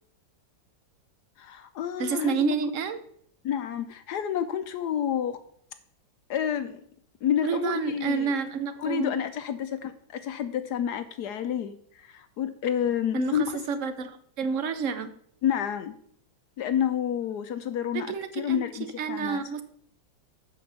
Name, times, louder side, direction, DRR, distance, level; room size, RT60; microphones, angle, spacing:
voice 1, 1.4-2.5 3.4-5.4 6.3-6.8 7.2-8.3 8.8-13.4 15.4-15.9 16.6-19.4, left 9 dB, 70° left, 10 dB, 1.0 m, -29 dB
voice 2, 2.0-3.0 7.4-9.2 13.1-15.1 18.1-19.6, right 5 dB, 55° right, 10 dB, 0.9 m, -29 dB
8.5 x 5.0 x 6.9 m, 0.64 s
omnidirectional pair, 2.1 m